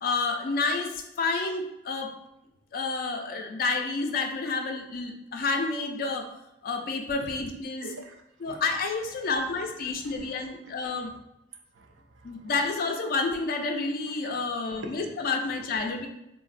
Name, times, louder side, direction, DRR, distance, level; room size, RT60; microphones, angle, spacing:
voice 1, 0.0-2.1 2.7-6.3 6.6-7.9 8.4-11.1 12.2-16.1, left 3 dB, 50° left, 0.4 m, -29 dB
voice 2, 7.8-8.6 9.2-11.2 11.7-12.5 14.0-15.0, right 2 dB, 80° right, 0.5 m, -47 dB
3.8 x 2.0 x 2.4 m
head